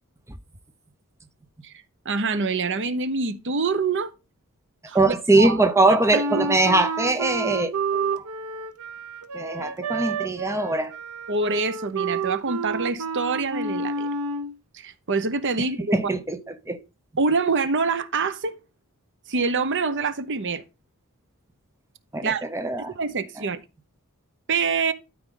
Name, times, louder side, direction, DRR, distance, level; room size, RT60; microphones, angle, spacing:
voice 1, 2.0-4.1 4.9-6.5 11.3-14.1 14.7-15.9 17.2-18.6 19.3-20.6 22.2-22.4 22.8-23.6 24.5-24.9, right 4 dB, 55° right, 0.8 m, -26 dB
voice 2, 4.9-8.2 9.3-10.9 15.9-16.4 16.7-16.8 22.1-22.9, right 2 dB, 15° right, 0.8 m, -22 dB
Wind instrument woodwind instrument, 6.1-14.5, right 4 dB, 85° right, 0.9 m, -29 dB
12.5 x 4.7 x 3.8 m
head